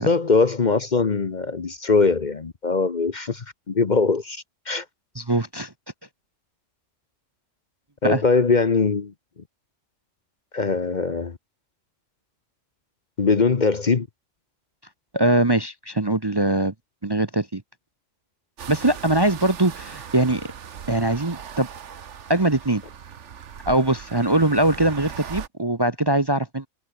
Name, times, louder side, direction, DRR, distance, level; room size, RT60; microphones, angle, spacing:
voice 1, 0.0-4.8 8.0-9.1 10.5-11.4 13.2-14.1, left 4 dB, 40° left, 1.0 m, -21 dB
voice 2, 5.2-5.7 8.0-8.2 15.1-16.7 17.0-17.6 18.7-20.5 20.9-21.7 22.3-22.8 23.7-26.7, right 1 dB, 20° right, 0.9 m, -22 dB
sound 1, 18.6-25.5, right 8 dB, 65° right, 1.4 m, -39 dB
omnidirectional pair, 1.3 m